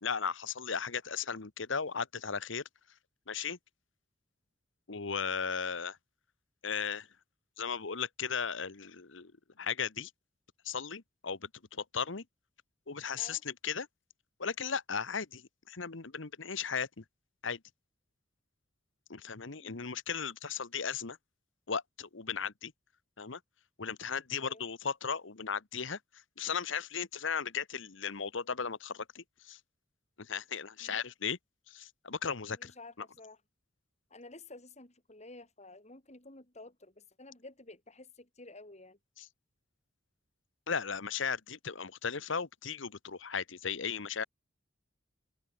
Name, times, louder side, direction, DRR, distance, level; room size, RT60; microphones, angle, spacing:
voice 1, 0.0-2.6 3.3-3.6 4.9-6.0 6.6-7.1 7.6-9.3 9.6-10.1 10.6-12.2 12.9-13.9 14.4-15.4 15.7-17.0 17.4-17.6 19.1-21.2 21.7-22.7 23.2-23.4 23.8-26.0 26.4-29.6 30.2-31.4 31.7-32.7 39.2-39.3 40.7-44.2, left 6 dB, 70° left, 1.2 m, -36 dB
voice 2, 19.4-19.9 24.4-24.7 30.8-31.0 32.5-33.4 34.1-39.0, left 2 dB, 35° left, 4.2 m, -52 dB
head